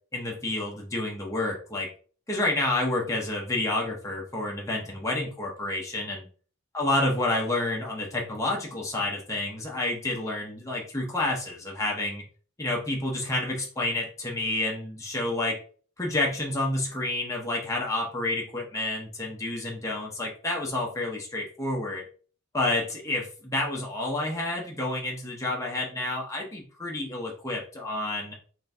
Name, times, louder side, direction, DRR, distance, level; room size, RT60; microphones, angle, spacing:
voice 1, 0.1-1.9 2.3-6.2 6.7-12.2 12.6-15.6 16.0-22.0 22.5-28.3, left 2 dB, 15° left, -2 dB, 0.8 m, -29 dB
3.7 x 2.7 x 3.5 m, 0.41 s
head